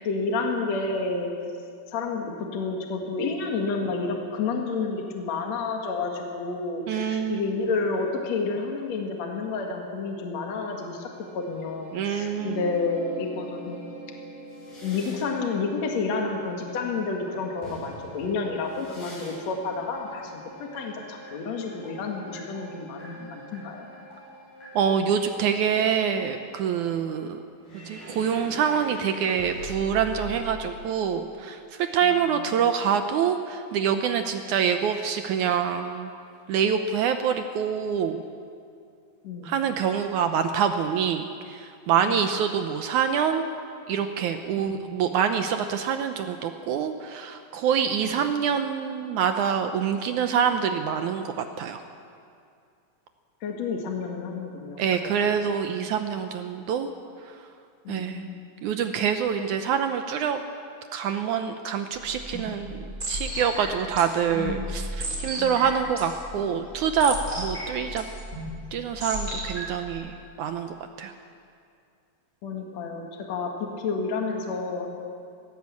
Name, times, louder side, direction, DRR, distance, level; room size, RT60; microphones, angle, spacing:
voice 1, 0.0-1.4 1.9-13.9 14.8-23.9 32.0-32.6 39.2-39.5 42.1-42.2 44.7-44.9 48.0-48.1 53.4-55.1 57.8-58.5 65.4-65.6 72.4-74.9, left 4 dB, 55° left, 2 dB, 2.6 m, -30 dB
voice 2, 6.9-7.5 11.9-12.6 24.8-27.4 27.9-36.1 36.5-38.2 39.4-43.5 43.9-51.8 54.8-56.9 57.3-57.4 57.9-58.3 58.6-60.4 60.9-68.1 68.7-71.1, right 7 dB, 75° right, 7 dB, 1.9 m, -26 dB
Bowed string instrument, 10.6-27.3, right 4 dB, 30° left, 4.7 m, -48 dB
sound 1, 12.3-17.3 17.6-19.5 19.8-26.0 27.6-30.5, equal, 70° left, 9.9 m, -43 dB
sound 2, 62.0-69.9, equal, 25° right, 4.0 m, -35 dB
20.0 x 17.0 x 8.4 m, 2.4 s
omnidirectional pair, 4.2 m